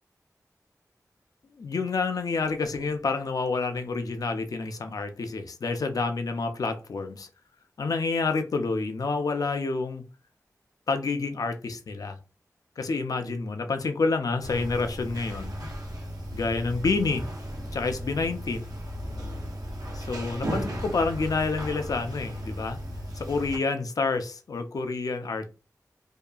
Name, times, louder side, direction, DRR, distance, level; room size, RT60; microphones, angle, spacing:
voice 1, 1.6-7.3 7.8-10.0 10.9-12.2 12.8-15.7 16.3-17.2 17.7-18.7 19.9-22.8 23.1-25.5, left 4 dB, 75° left, 0.4 m, -28 dB
sound 1, 14.4-23.6, equal, 90° right, 0.7 m, -35 dB
2.7 x 2.3 x 2.3 m
wide cardioid pair, 75°, 6 cm